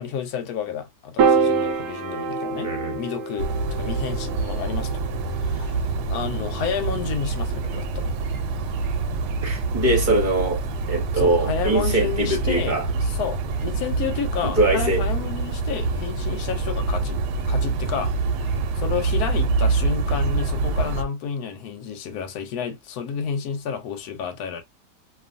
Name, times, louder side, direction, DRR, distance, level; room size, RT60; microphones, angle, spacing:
voice 1, 0.0-4.9 5.4-5.8 6.1-8.1 11.2-17.2 17.5-24.6, left 7 dB, 70° left, 1.2 m, -31 dB
Piano, 1.2-7.6, right 5 dB, 65° right, 0.8 m, -27 dB
voice 2, 2.6-3.0 9.4-12.9 14.4-15.0, right 2 dB, 35° right, 0.8 m, -23 dB
sound 1, 3.4-21.0, right 4 dB, 85° right, 1.2 m, -26 dB
2.7 x 2.5 x 2.5 m
omnidirectional pair, 1.8 m